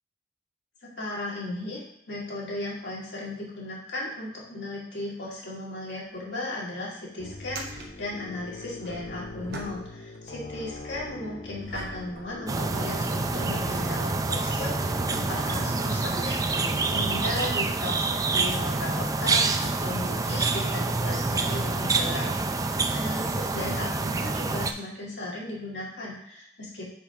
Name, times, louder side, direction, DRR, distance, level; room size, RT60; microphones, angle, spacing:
voice 1, 0.8-1.8 2.1-27.0, left 2 dB, 75° left, -5 dB, 2.1 m, -36 dB
sound 1, 6.0-6.2 6.4-6.5 7.4-10.2 10.5-13.2 13.9-14.0 18.2-18.3 19.6-19.7, right 3 dB, 60° right, 0.9 m, -44 dB
sound 2, 7.2-17.2, left 3 dB, 45° left, 0.4 m, -41 dB
sound 3, 12.5-24.7, right 3 dB, 20° right, 0.3 m, -27 dB
5.0 x 4.0 x 5.2 m, 0.80 s
head